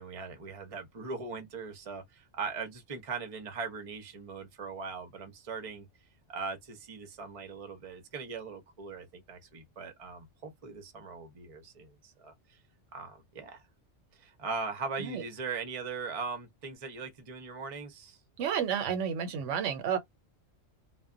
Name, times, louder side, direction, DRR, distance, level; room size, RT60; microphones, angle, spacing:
voice 1, 0.0-5.9 6.3-12.3 12.9-13.6 14.2-18.2, right 4 dB, 35° right, 0.6 m, -40 dB
voice 2, 18.4-20.0, right 8 dB, 80° right, 0.9 m, -31 dB
2.2 x 2.1 x 3.6 m
omnidirectional pair, 1.2 m